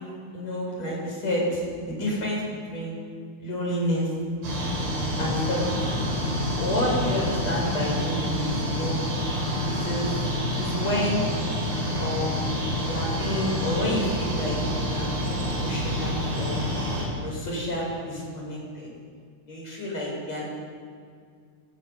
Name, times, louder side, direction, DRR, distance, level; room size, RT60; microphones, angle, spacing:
voice 1, 0.3-2.4 2.7-2.9 3.4-4.1 5.2-6.0 6.6-9.1 9.7-10.1 10.6-11.3 12.0-12.4 12.9-14.6 14.9-16.6 17.1-18.9 19.5-20.4, left 1 dB, 30° left, -3 dB, 8.5 m, -29 dB
sound 1, 4.4-17.1, equal, 55° right, 8.0 m, -28 dB
19.5 x 19.0 x 9.6 m, 2.1 s
omnidirectional pair, 5.9 m